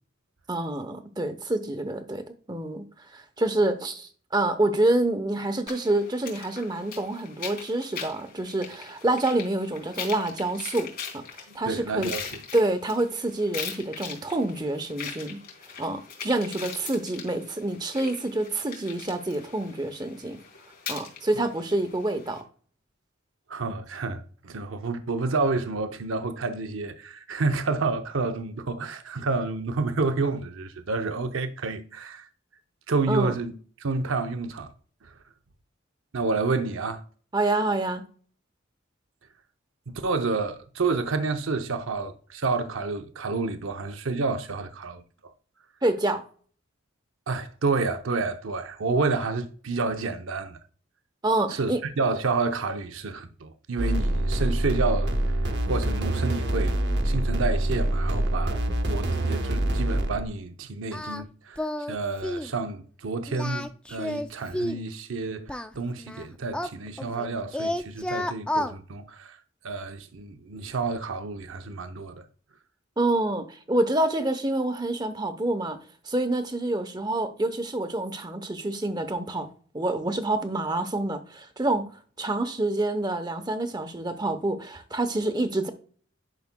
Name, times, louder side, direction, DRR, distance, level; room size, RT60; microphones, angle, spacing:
voice 1, 0.5-2.8 3.1-11.2 11.5-12.1 12.5-15.4 15.8-20.4 20.9-22.4 33.1-33.3 37.3-38.0 45.8-46.2 51.2-51.8 73.0-75.8 76.1-79.5 79.7-81.9 82.2-85.7, right 2 dB, 20° right, 0.8 m, -27 dB
sound 1, 5.7-22.4, left 6 dB, 45° left, 2.8 m, -41 dB
voice 2, 11.5-12.4 23.5-32.3 32.9-33.5 33.8-34.7 36.1-37.0 39.9-45.3 47.3-50.6 51.5-55.2 55.7-56.8 57.0-58.6 58.8-69.4 69.6-72.2, right 3 dB, 80° right, 0.6 m, -29 dB
sound 2, 53.8-60.2, right 1 dB, 55° right, 0.9 m, -25 dB
Singing, 60.9-61.2 61.6-62.0 62.2-62.5 63.3-64.9 65.5-67.3 67.5-68.7, left 1 dB, 5° left, 0.3 m, -31 dB
10.5 x 5.7 x 2.2 m
head